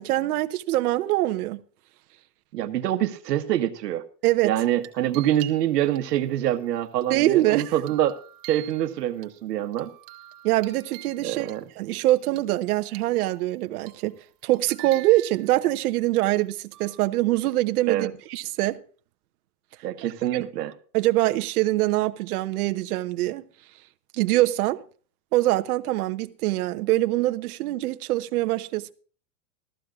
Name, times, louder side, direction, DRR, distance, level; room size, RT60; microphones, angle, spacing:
voice 1, 0.0-1.6 4.2-4.5 7.1-7.7 10.4-11.5 11.8-14.1 14.4-18.8 20.3-20.5 20.9-23.4 24.2-24.8 25.3-28.9, right 16 dB, 65° right, 1.0 m, -24 dB
voice 2, 2.5-4.0 4.4-8.1 8.4-9.9 11.2-11.6 17.9-18.1 19.8-20.7, right 12 dB, 85° right, 1.5 m, -25 dB
sound 1, 4.6-6.0 6.5-9.3 9.7-11.6 12.0-13.5 13.9-14.2 14.4-15.7 16.7-17.0, right 17 dB, 40° right, 2.1 m, -46 dB
17.5 x 14.5 x 2.4 m
supercardioid pair, 155°, 47 cm